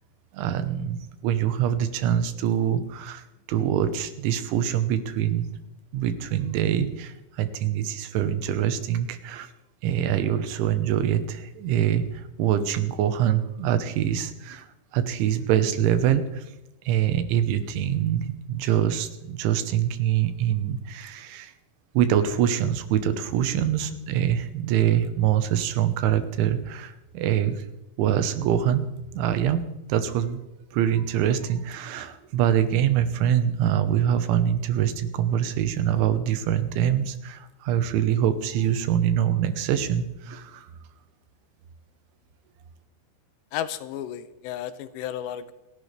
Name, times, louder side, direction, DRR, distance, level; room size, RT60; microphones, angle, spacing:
voice 1, 0.3-5.5 5.9-9.5 9.8-16.5 16.9-21.5 22.0-27.7 28.0-29.6 29.9-30.4 30.7-40.7, right 10 dB, 90° right, 10 dB, 3.6 m, -24 dB
voice 2, 43.5-45.5, left 11 dB, 80° left, 12 dB, 2.7 m, -33 dB
28.5 x 11.0 x 3.4 m, 0.96 s
omnidirectional pair, 5.3 m